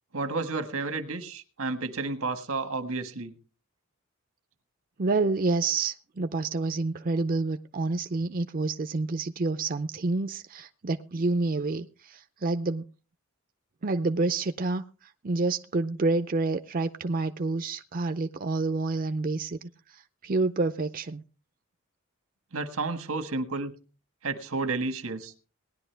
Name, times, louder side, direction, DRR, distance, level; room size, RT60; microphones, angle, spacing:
voice 1, 0.1-3.3 22.5-23.7 24.2-25.3, right 3 dB, 85° right, 1.6 m, -31 dB
voice 2, 5.0-12.8 13.8-14.8 15.2-19.6 20.2-21.2, right 3 dB, 40° right, 0.5 m, -28 dB
19.0 x 11.0 x 3.4 m
head